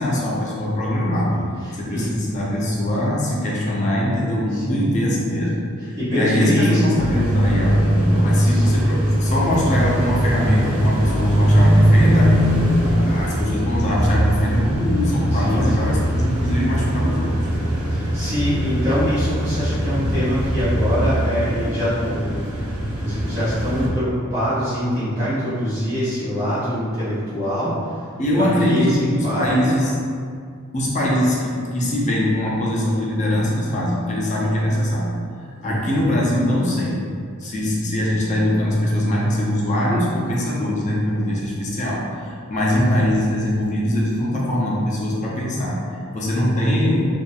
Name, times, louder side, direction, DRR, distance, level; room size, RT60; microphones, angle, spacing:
voice 1, 0.0-1.3 1.8-12.5 12.8-17.4 28.2-30.0 30.7-35.1 35.6-37.0 37.4-47.0, left 1 dB, 35° left, -4 dB, 0.4 m, -22 dB
voice 2, 1.3-2.1 4.5-4.9 6.0-6.9 8.4-8.7 13.0-13.2 15.3-15.9 17.9-22.6 23.0-27.9 28.4-29.7 35.6-36.1 42.7-42.9, equal, 30° right, -12 dB, 0.8 m, -24 dB
sound 1, 7.0-23.9, equal, 80° right, 0.6 m, -20 dB
2.6 x 2.4 x 2.2 m, 2.2 s
head